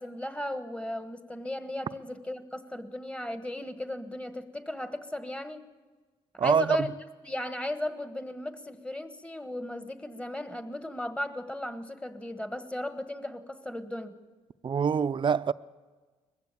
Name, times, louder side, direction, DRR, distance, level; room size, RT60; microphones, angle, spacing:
voice 1, 0.0-5.6 6.4-6.9 7.2-14.2, left 1 dB, 10° left, 1.6 m, -36 dB
voice 2, 6.4-6.9 14.6-15.5, right 7 dB, 40° right, 0.6 m, -25 dB
21.0 x 15.0 x 8.5 m
cardioid pair, 80°, 13 cm